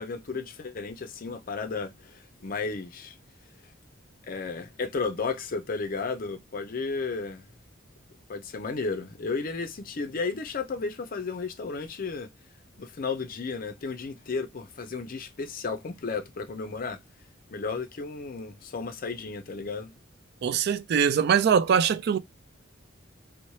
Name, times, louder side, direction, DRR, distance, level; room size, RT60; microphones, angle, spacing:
voice 1, 0.0-3.2 4.3-7.5 8.3-12.3 12.8-17.0 17.5-19.9, left 4 dB, 45° left, 0.5 m, -33 dB
voice 2, 20.4-22.2, right 7 dB, 55° right, 0.3 m, -22 dB
3.0 x 2.1 x 2.6 m
head